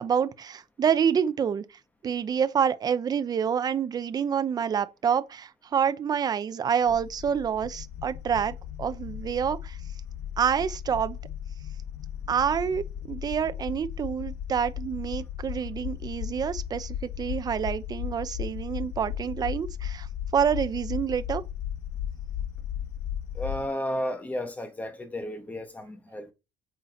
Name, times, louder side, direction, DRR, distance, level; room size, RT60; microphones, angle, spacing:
voice 1, 0.0-1.6 2.0-9.8 10.4-11.2 12.3-20.1 20.3-21.4, right 7 dB, 25° right, 0.7 m, -27 dB
sound 1, 6.9-23.7, left 10 dB, 50° left, 0.5 m, -36 dB
voice 2, 23.3-26.3, left 1 dB, 10° left, 1.3 m, -33 dB
9.2 x 7.3 x 4.3 m
cardioid pair, 180°, 16 cm